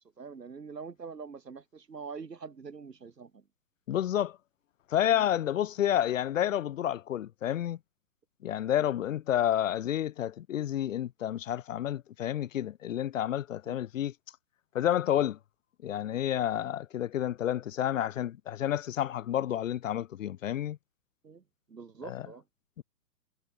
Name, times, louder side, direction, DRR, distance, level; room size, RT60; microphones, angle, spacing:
voice 1, 0.0-3.4 5.1-5.3 8.8-8.9 13.7-13.8 21.2-21.4 21.7-22.4, right 5 dB, 75° right, 6.3 m, -44 dB
voice 2, 3.9-4.4 4.9-7.8 8.4-14.1 14.7-15.4 15.8-20.8 22.0-22.3 22.8-22.9, left 11 dB, 50° left, 1.3 m, -30 dB
figure-of-eight pair, 120°, 49 cm